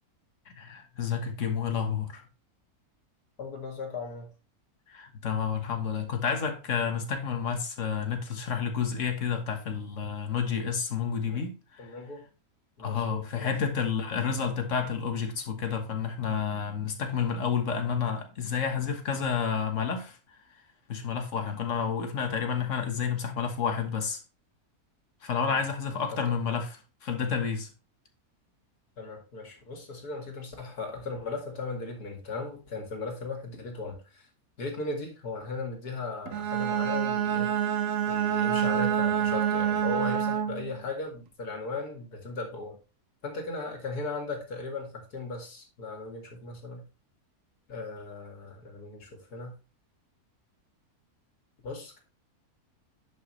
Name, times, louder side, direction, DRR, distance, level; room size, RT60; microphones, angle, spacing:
voice 1, 0.6-2.2 4.9-11.9 12.8-20.2 20.9-24.2 25.2-26.8 27.0-27.7, left 6 dB, 55° left, 1.7 m, -30 dB
voice 2, 3.4-4.3 11.3-11.4 11.8-12.2 12.8-13.5 25.4-25.6 26.1-26.2 29.0-34.2 34.6-37.5 38.1-42.8 43.2-46.8 47.7-49.6 51.6-52.0, left 3 dB, 90° left, 2.7 m, -37 dB
Bowed string instrument, 36.3-40.7, right 9 dB, 65° right, 1.1 m, -27 dB
10.5 x 5.6 x 3.2 m
omnidirectional pair, 1.6 m